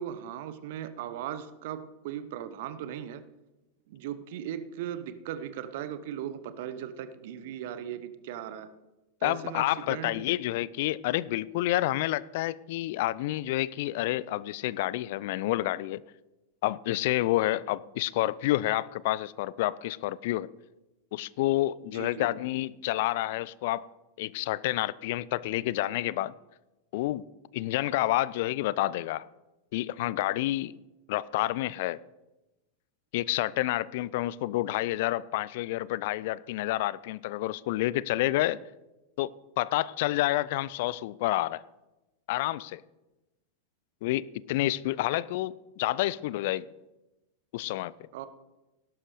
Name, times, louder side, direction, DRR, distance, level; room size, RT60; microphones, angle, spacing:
voice 1, 0.0-3.2 3.9-8.7 9.2-10.2 21.8-22.3 48.1-48.3, right 10 dB, 50° right, 0.9 m, -38 dB
voice 2, 9.2-16.0 16.6-20.5 21.1-23.9 24.2-26.3 26.9-27.2 27.5-29.3 29.7-30.7 31.1-32.0 33.1-38.6 39.2-39.3 39.6-41.6 42.3-42.8 44.0-46.7 47.5-47.9, left 16 dB, 50° left, 0.3 m, -29 dB
18.0 x 11.5 x 3.2 m
figure-of-eight pair, 90°, 0 cm